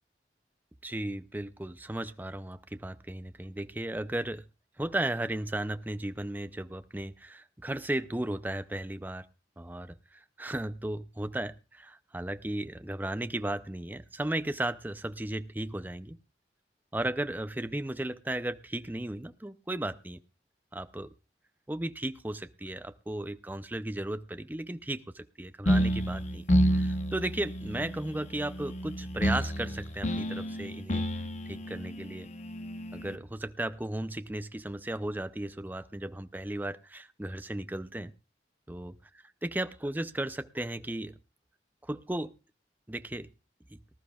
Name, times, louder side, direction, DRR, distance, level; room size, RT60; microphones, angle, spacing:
voice 1, 0.8-4.4 4.8-9.3 9.6-16.2 16.9-20.2 20.7-21.1 21.7-31.0 31.5-32.3 32.9-38.1 38.7-41.1 41.8-42.3 42.9-43.3, right 1 dB, 10° right, 11 dB, 0.5 m, -35 dB
sound 1, 25.7-33.2, equal, 40° left, 1.0 m, -30 dB
19.5 x 12.5 x 2.4 m, 0.30 s
head